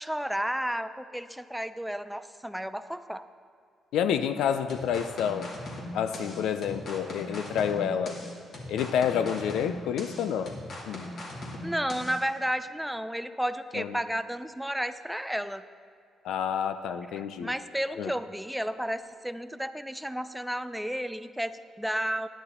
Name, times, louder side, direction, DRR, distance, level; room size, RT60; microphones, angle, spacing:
voice 1, 0.0-3.2 11.6-15.6 17.4-22.3, equal, ahead, 12 dB, 0.4 m, -32 dB
voice 2, 3.9-5.5 5.9-8.2 8.7-10.5 10.9-11.0 13.7-14.0 16.2-17.5 18.0-18.1, left 8 dB, 85° left, 10 dB, 0.5 m, -29 dB
sound 1, 4.7-12.2, left 1 dB, 55° left, 2.3 m, -39 dB
11.0 x 10.0 x 4.2 m, 2.4 s
cardioid pair, 90°, 0 cm